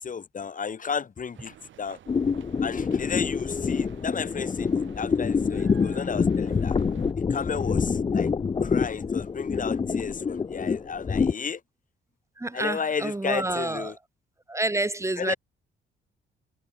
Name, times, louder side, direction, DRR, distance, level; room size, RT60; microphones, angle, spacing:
voice 1, 0.0-2.0 2.6-6.8 7.3-8.3 8.6-11.6 12.5-14.0 15.2-15.4, left 6 dB, 40° left, 3.3 m, -33 dB
sound 1, 1.3-7.1, right 11 dB, 75° right, 7.7 m, -51 dB
sound 2, 2.1-11.3, left 5 dB, 25° left, 0.6 m, -26 dB
voice 2, 12.4-13.9 14.5-15.3, right 2 dB, 15° right, 3.1 m, -28 dB
cardioid pair, 90°, 20 cm